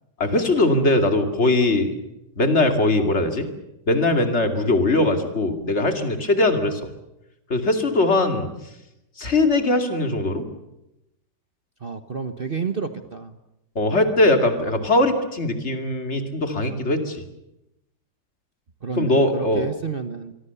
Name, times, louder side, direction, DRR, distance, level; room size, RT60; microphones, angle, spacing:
voice 1, 0.2-1.9 2.4-3.5 3.9-6.9 7.5-8.5 9.2-10.5 13.7-17.2 19.0-19.7, left 2 dB, 40° left, 6 dB, 2.8 m, -20 dB
voice 2, 11.8-13.4 18.8-20.3, right 5 dB, 35° right, 9 dB, 1.1 m, -30 dB
24.5 x 24.0 x 7.0 m, 0.89 s
omnidirectional pair, 1.8 m